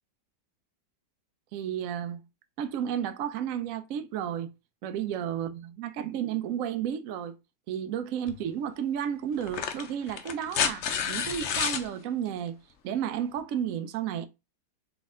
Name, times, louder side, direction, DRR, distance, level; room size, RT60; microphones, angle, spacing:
voice 1, 1.5-2.2 2.6-4.5 4.8-7.3 7.7-12.6 12.8-14.3, right 9 dB, 80° right, 0.7 m, -32 dB
sound 1, 8.3-8.4 9.4-11.9 13.4-13.5, left 7 dB, 70° left, 0.6 m, -30 dB
3.6 x 3.4 x 4.0 m
omnidirectional pair, 2.0 m